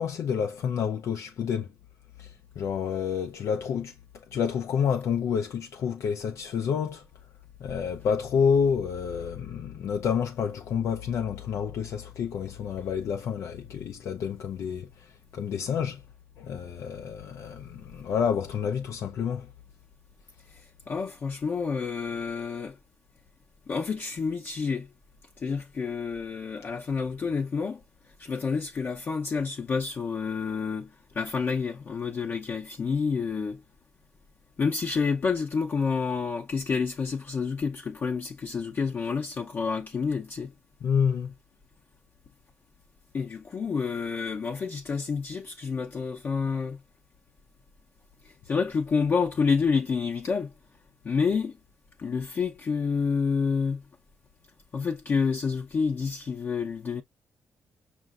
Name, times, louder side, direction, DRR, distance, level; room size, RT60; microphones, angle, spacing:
voice 1, 0.0-1.7 2.2-2.3 2.6-3.9 4.3-7.0 7.6-15.1 15.3-16.0 16.4-19.5 40.8-41.3, left 7 dB, 70° left, 0.5 m, -29 dB
voice 2, 20.5-22.8 23.7-24.9 25.4-27.8 28.2-33.6 34.6-40.5 43.1-46.8 48.2-50.5 51.0-51.6 52.0-53.8 54.7-57.0, left 5 dB, 40° left, 0.8 m, -29 dB
5.6 x 2.6 x 2.4 m
cardioid pair, 140°, 5 cm